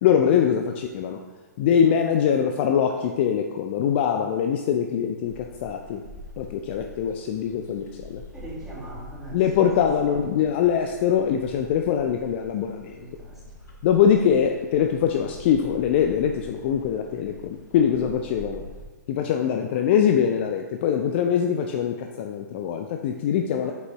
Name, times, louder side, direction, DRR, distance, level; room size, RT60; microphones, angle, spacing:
voice 1, 0.0-1.2 1.6-6.0 6.4-8.2 9.3-13.1 13.8-18.6 19.1-23.7, left 8 dB, 40° left, 4 dB, 0.4 m, -23 dB
sound 1, 5.2-18.8, left 2 dB, 75° left, 1.7 m, -45 dB
voice 2, 8.3-9.4 10.1-10.2 13.0-13.4 18.3-18.6 23.6-23.7, right 2 dB, 5° right, -8 dB, 2.1 m, -41 dB
7.8 x 5.2 x 3.0 m, 1.3 s
figure-of-eight pair, 115°, 10 cm